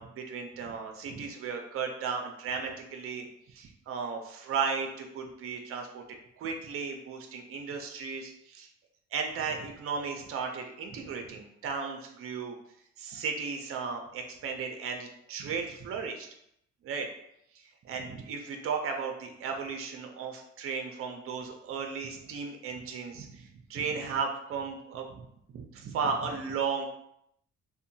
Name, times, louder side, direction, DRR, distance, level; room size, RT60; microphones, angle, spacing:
voice 1, 0.0-8.7 9.1-12.6 13.0-16.3 16.8-17.1 17.5-25.3 25.5-26.9, right 5 dB, 50° right, 4 dB, 0.5 m, -35 dB
2.7 x 2.1 x 2.7 m, 0.76 s
cardioid pair, 90°, 30 cm